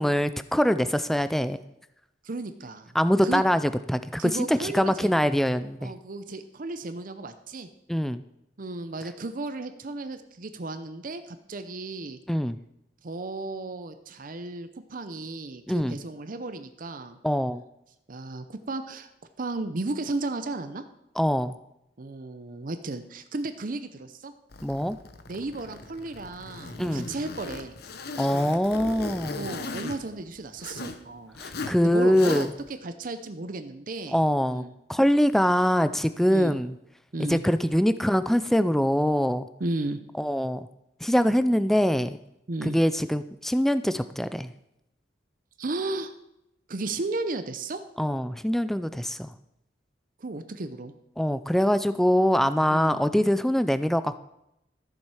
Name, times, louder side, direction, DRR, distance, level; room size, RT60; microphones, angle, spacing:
voice 1, 0.0-1.6 2.9-5.9 7.9-8.2 12.3-12.6 15.7-15.9 17.2-17.6 21.2-21.5 24.6-25.0 26.8-27.1 28.2-29.5 31.4-32.5 34.1-34.6 34.9-36.8 37.3-39.5 40.2-40.7 41.0-42.2 42.6-44.5 48.0-49.3 51.2-54.2, equal, ahead, 12 dB, 0.3 m, -23 dB
voice 2, 2.2-3.0 3.2-3.4 4.2-5.1 5.8-7.7 8.6-12.2 13.0-17.2 18.1-19.1 19.4-20.8 22.0-24.3 25.3-27.8 29.4-31.4 31.8-34.2 34.5-34.7 36.3-36.6 37.1-37.4 39.6-40.0 42.5-42.8 45.6-46.1 46.7-47.8 50.2-50.9 52.7-53.0, right 2 dB, 45° right, 9 dB, 0.6 m, -34 dB
Zipper (clothing), 24.5-31.0 31.3-31.8 32.1-32.7, left 3 dB, 55° left, 0.8 m, -38 dB
13.5 x 7.4 x 4.8 m, 0.83 s
head